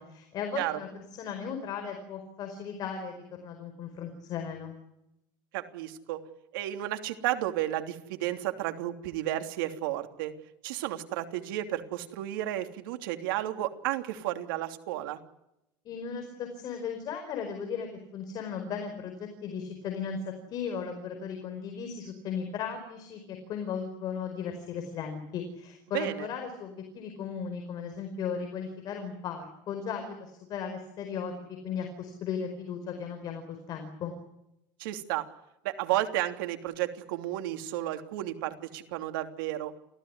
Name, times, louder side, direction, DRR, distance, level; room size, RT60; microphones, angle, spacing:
voice 1, 0.0-4.7 15.8-20.2 20.5-34.1, left 6 dB, 35° left, 5 dB, 4.8 m, -36 dB
voice 2, 5.5-6.2 6.5-10.3 10.6-15.2 25.9-26.3 34.8-35.3 35.6-39.7, right 14 dB, 85° right, 7 dB, 3.2 m, -32 dB
28.5 x 16.5 x 9.9 m, 0.84 s
cardioid pair, 160°, 11 cm